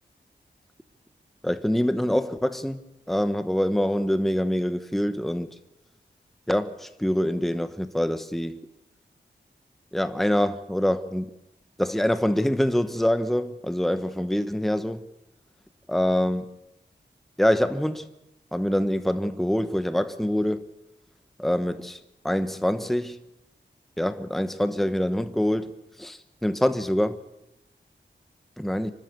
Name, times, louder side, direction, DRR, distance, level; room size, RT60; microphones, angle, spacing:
voice 1, 1.4-2.8 3.1-5.5 6.5-8.6 9.9-11.3 11.8-15.0 15.9-16.5 17.4-18.1 18.5-20.6 21.4-22.0 22.2-23.2 24.0-25.7 26.0-27.2 28.6-28.9, equal, ahead, 1.1 m, -25 dB
26.5 x 12.5 x 8.1 m
cardioid pair, 55°, 19 cm